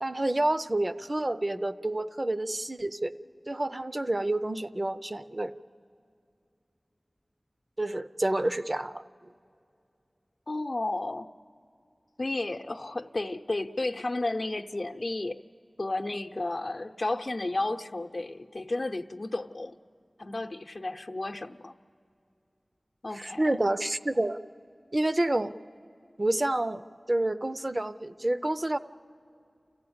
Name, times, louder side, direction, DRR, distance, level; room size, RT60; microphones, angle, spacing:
voice 1, 0.0-3.1 3.5-5.5 7.8-9.0 23.1-24.4 24.9-25.5 26.2-26.8 27.1-28.8, right 1 dB, 40° right, 0.5 m, -28 dB
voice 2, 10.5-11.3 12.2-15.4 15.8-19.8 20.2-21.7 23.0-23.5, left 2 dB, 60° left, 0.7 m, -32 dB
28.5 x 15.5 x 8.7 m
wide cardioid pair, 50°, 0 cm